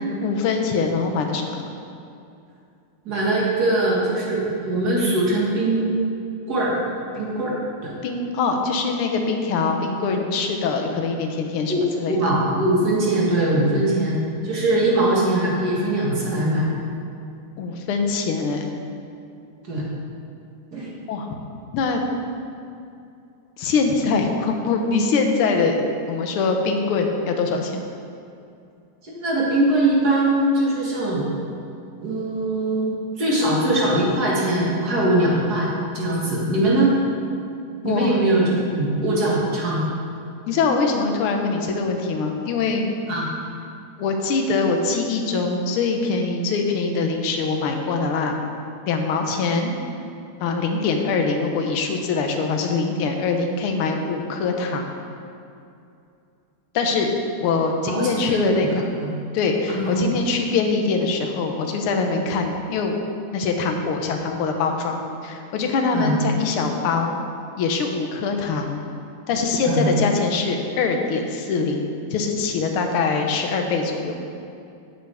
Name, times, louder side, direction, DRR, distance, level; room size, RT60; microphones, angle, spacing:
voice 1, 0.2-1.6 8.0-12.3 17.6-18.7 21.1-21.3 21.7-22.0 23.6-27.8 37.8-38.2 40.5-42.9 44.0-48.4 48.9-49.7 50.4-55.0 56.7-57.1 57.4-58.8 59.3-63.0 63.3-67.2 67.6-68.8 69.3-74.2, left 4 dB, 90° left, 3 dB, 1.7 m, -23 dB
voice 2, 3.1-5.9 6.5-6.8 7.1-7.5 7.8-7.9 11.7-11.8 12.1-16.7 19.6-19.8 20.7-20.9 29.0-31.3 32.0-37.0 37.8-39.9 43.1-43.3 57.8-58.6 59.0-59.1 59.7-60.1 65.9-66.2 69.6-69.9, right 1 dB, 50° right, -5 dB, 2.1 m, -21 dB
9.1 x 7.6 x 3.4 m, 2.5 s
omnidirectional pair, 2.3 m